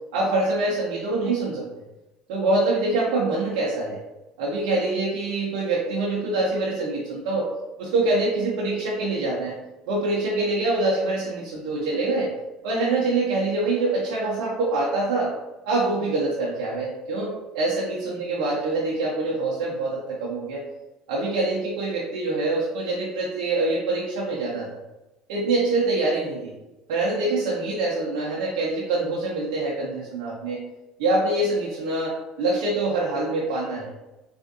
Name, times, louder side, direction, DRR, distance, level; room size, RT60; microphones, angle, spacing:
voice 1, 0.1-1.7 2.3-4.0 4.4-7.5 7.8-9.5 9.9-12.3 12.6-15.3 15.6-20.6 21.1-24.7 25.3-26.5 26.9-30.6 31.0-33.9, right 2 dB, 80° right, -5 dB, 0.6 m, -25 dB
3.5 x 2.5 x 2.6 m, 1.0 s
hypercardioid pair, 80°, 2 cm